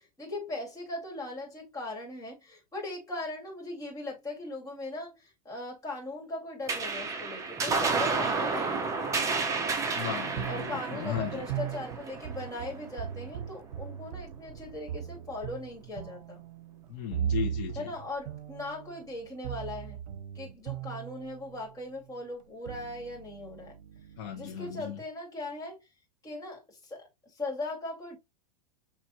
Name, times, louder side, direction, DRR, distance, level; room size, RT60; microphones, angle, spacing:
voice 1, 0.0-9.0 10.5-16.4 17.8-20.0 20.3-23.8 24.3-25.9 26.2-28.2, left 2 dB, 15° left, 2.3 m, -39 dB
sound 1, 6.7-13.5, right 4 dB, 15° right, 0.8 m, -31 dB
voice 2, 9.9-11.4 16.9-17.9 24.2-25.0, left 10 dB, 45° left, 1.3 m, -36 dB
sound 2, 10.3-21.7 22.4-24.8, right 9 dB, 80° right, 0.7 m, -39 dB
6.3 x 3.1 x 2.7 m
supercardioid pair, 150°, 21 cm